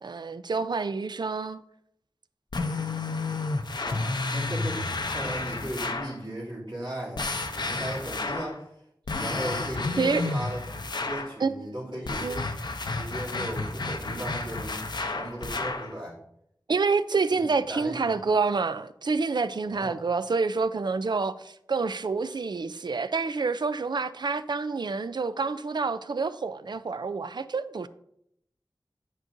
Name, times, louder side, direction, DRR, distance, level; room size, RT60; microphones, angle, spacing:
voice 1, 0.0-1.6 10.0-10.3 11.4-11.9 12.2-12.4 15.0-15.1 16.7-27.9, right 4 dB, 70° right, 0.4 m, -28 dB
sound 1, 2.5-6.2 7.2-8.6 9.1-11.3 12.1-15.9, left 3 dB, 65° left, 0.6 m, -31 dB
voice 2, 3.8-8.7 9.2-12.4 12.9-16.2 17.3-17.4 17.7-18.2 19.7-20.0, right 1 dB, 90° right, 2.7 m, -37 dB
8.8 x 6.3 x 2.6 m
wide cardioid pair, 45°, 8 cm